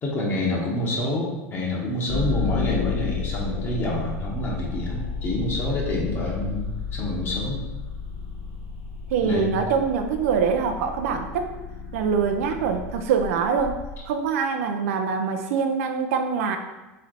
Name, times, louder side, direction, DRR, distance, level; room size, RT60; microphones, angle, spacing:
voice 1, 0.0-7.6 9.2-9.6, left 1 dB, 30° left, -2 dB, 1.1 m, -27 dB
sound 1, 2.1-14.0, left 6 dB, 45° left, 0.9 m, -32 dB
voice 2, 9.1-11.5 11.9-13.8 14.1-16.6, right 6 dB, 80° right, 5 dB, 0.5 m, -24 dB
3.9 x 3.2 x 4.0 m, 1.1 s
supercardioid pair, 130°, 8 cm